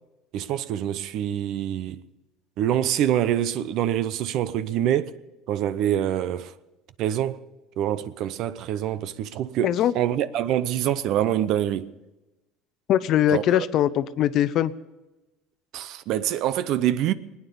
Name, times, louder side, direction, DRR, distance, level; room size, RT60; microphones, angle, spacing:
voice 1, 0.3-2.0 2.6-5.2 5.5-6.5 7.0-7.4 7.8-11.9 13.3-13.7 15.7-17.1, right 11 dB, 60° right, 0.7 m, -25 dB
voice 2, 9.6-9.9 12.9-14.7, left 11 dB, 50° left, 0.6 m, -21 dB
22.0 x 9.6 x 6.9 m
cardioid pair, 130°, 0 cm